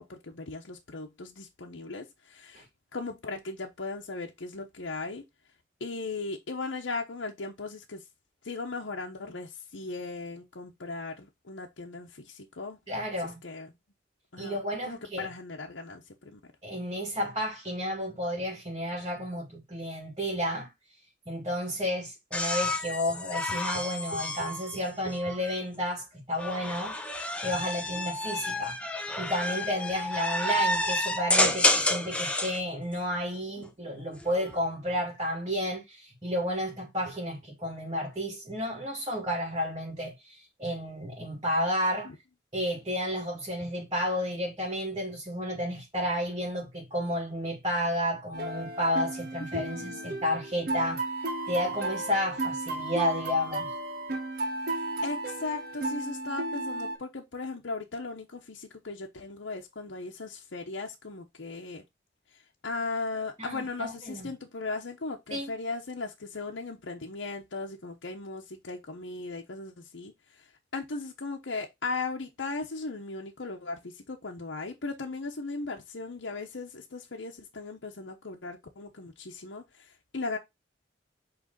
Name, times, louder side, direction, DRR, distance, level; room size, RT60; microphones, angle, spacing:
voice 1, 0.0-2.7 2.9-5.2 5.8-8.0 8.4-12.8 13.4-13.7 14.3-14.6 14.8-16.4 33.6-34.1 42.0-42.2 49.6-50.2 54.7-61.8 62.3-80.4, left 3 dB, 80° left, 0.9 m, -37 dB
voice 2, 12.9-13.4 14.4-15.3 16.6-20.7 21.3-26.9 27.4-28.8 29.2-42.1 42.5-51.0 51.5-53.7 63.4-64.3 65.3-65.5, equal, 25° right, 2.1 m, -31 dB
sound 1, 22.3-25.6 26.4-32.6 34.1-34.6, left 1 dB, 5° left, 0.7 m, -29 dB
sound 2, 48.3-57.0, right 2 dB, 50° right, 1.5 m, -34 dB
7.8 x 3.3 x 3.9 m
head